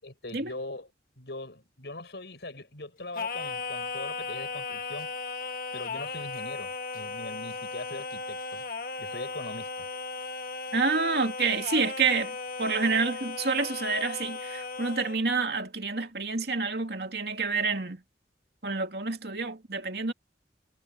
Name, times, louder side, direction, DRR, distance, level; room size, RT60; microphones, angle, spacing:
voice 1, 0.0-0.9 1.2-5.1 5.7-8.6 9.0-9.9, left 2 dB, 75° left, 5.5 m, -41 dB
Singing, 3.1-15.2, left 4 dB, 55° left, 1.6 m, -36 dB
voice 2, 10.7-18.0 18.6-20.1, right 4 dB, 65° right, 2.7 m, -28 dB
head